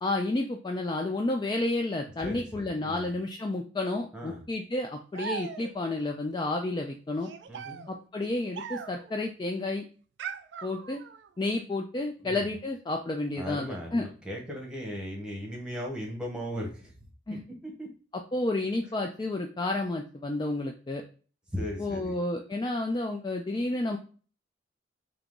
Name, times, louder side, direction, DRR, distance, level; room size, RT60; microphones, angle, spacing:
voice 1, 0.0-7.3 7.9-9.8 10.6-11.0 11.4-14.0 17.3-17.4 18.1-21.0 21.8-24.0, left 2 dB, 20° left, 3 dB, 0.3 m, -31 dB
voice 2, 2.2-3.1 4.1-4.4 7.5-7.9 12.2-12.4 13.4-16.9 17.3-17.9 21.5-22.1, equal, 5° right, -1 dB, 1.0 m, -37 dB
sound 1, 5.1-6.0 7.2-9.2 10.2-11.3, right 7 dB, 60° right, 0.3 m, -40 dB
3.7 x 2.9 x 3.6 m, 0.38 s
head